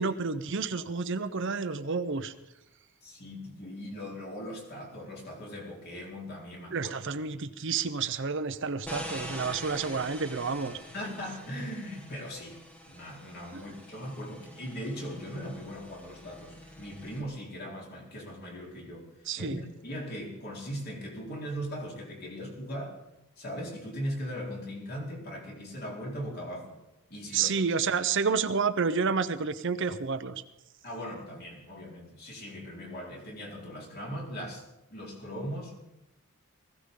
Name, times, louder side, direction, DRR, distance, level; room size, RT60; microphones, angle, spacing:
voice 1, 0.0-2.3 6.7-10.8 13.5-13.6 19.3-19.6 27.3-30.4, right 5 dB, 55° right, 11 dB, 0.7 m, -30 dB
voice 2, 3.0-7.0 10.9-12.6 12.9-19.1 19.4-23.0 23.4-26.8 27.1-27.6 30.8-34.6 34.9-35.8, equal, 45° left, -1 dB, 3.9 m, -39 dB
sound 1, 8.8-17.2, equal, 5° left, 1.4 m, -45 dB
20.0 x 15.5 x 3.8 m, 0.89 s
head